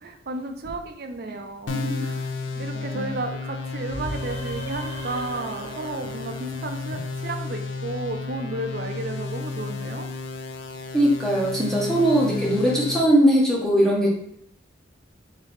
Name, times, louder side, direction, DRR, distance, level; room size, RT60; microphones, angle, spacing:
voice 1, 0.0-2.3 2.6-10.1 11.8-12.0, right 2 dB, 50° right, 6 dB, 0.5 m, -33 dB
sound 1, 1.7-13.0, left 4 dB, 70° left, 0.4 m, -33 dB
voice 2, 1.7-2.1 2.7-3.1 10.9-14.1, equal, ahead, -3 dB, 0.7 m, -21 dB
sound 2, 3.9-7.5, right 2 dB, 25° right, 0.9 m, -38 dB
3.6 x 3.1 x 3.4 m, 0.71 s
head